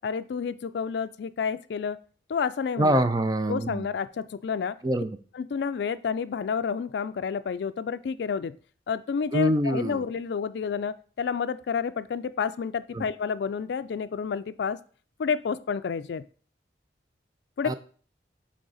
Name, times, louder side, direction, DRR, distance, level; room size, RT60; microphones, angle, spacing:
voice 1, 0.0-2.0 2.3-3.0 3.5-4.8 5.3-8.6 8.9-14.8 15.2-16.2 17.6-17.8, left 6 dB, 70° left, 13 dB, 0.3 m, -30 dB
voice 2, 2.8-3.8 4.8-5.2 9.3-10.0 12.9-13.1 17.6-17.8, right 1 dB, 20° right, 11 dB, 0.4 m, -25 dB
8.5 x 3.3 x 4.0 m, 0.43 s
head